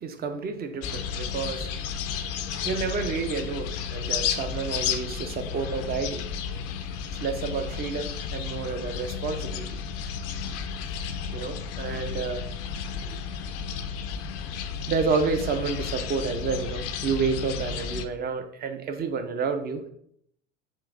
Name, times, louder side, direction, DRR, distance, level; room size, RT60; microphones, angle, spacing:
voice 1, 0.0-1.7 2.6-6.2 7.1-9.8 11.3-12.4 13.1-13.2 14.9-19.9, right 5 dB, 25° right, 7 dB, 0.5 m, -30 dB
sound 1, 0.8-18.1, left 7 dB, 45° left, 0.4 m, -32 dB
3.7 x 2.4 x 3.6 m, 0.67 s
hypercardioid pair, 80°, 36 cm